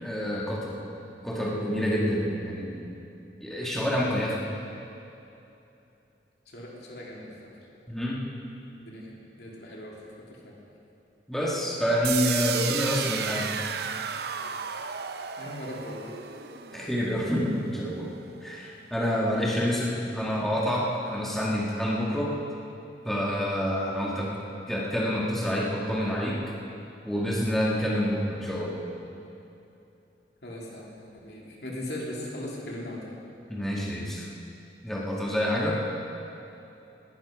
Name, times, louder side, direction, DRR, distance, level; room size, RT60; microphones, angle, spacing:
voice 1, 0.0-0.8 1.2-2.9 3.4-4.4 7.9-8.3 11.3-13.5 16.7-18.1 18.4-22.3 23.0-24.3 24.7-26.4 27.0-28.8 33.5-34.3 34.8-35.8, equal, ahead, -5 dB, 1.7 m, -28 dB
voice 2, 6.5-7.3 8.8-9.1 9.4-10.0 10.4-10.5 15.4-16.2 30.4-30.9 31.2-33.1, left 1 dB, 65° left, -3 dB, 2.9 m, -38 dB
sound 1, 12.0-18.0, right 8 dB, 60° right, 0.6 m, -33 dB
19.0 x 11.5 x 5.2 m, 2.8 s
head